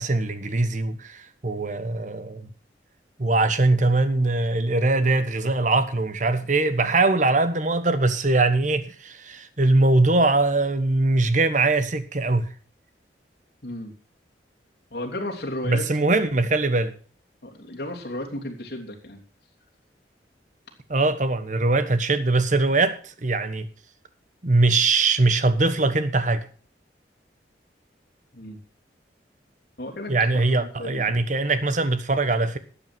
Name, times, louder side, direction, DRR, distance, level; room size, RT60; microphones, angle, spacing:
voice 1, 0.0-2.5 3.2-12.5 15.6-16.9 20.9-23.7 24.4-26.5 30.1-32.6, right 2 dB, 45° right, 1.3 m, -22 dB
voice 2, 13.6-13.9 14.9-15.8 17.4-19.2 28.3-28.6 29.8-30.2 30.5-31.1, left 1 dB, 60° left, 3.1 m, -34 dB
12.5 x 8.7 x 6.1 m
head